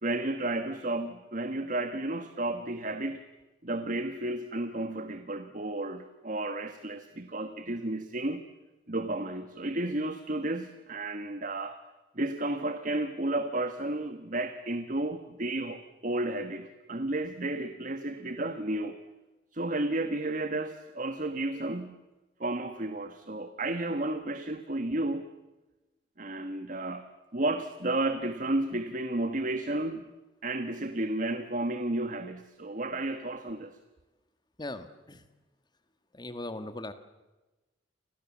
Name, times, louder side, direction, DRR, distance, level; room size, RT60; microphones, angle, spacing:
voice 1, 0.0-3.2 3.6-8.4 8.9-11.8 12.1-19.0 19.5-22.0 22.4-25.3 26.2-30.0 30.4-33.8, right 2 dB, 45° right, 9 dB, 1.5 m, -32 dB
voice 2, 34.6-35.2 36.1-36.9, left 2 dB, 25° left, 10 dB, 1.8 m, -39 dB
30.0 x 25.5 x 7.4 m, 1.1 s
head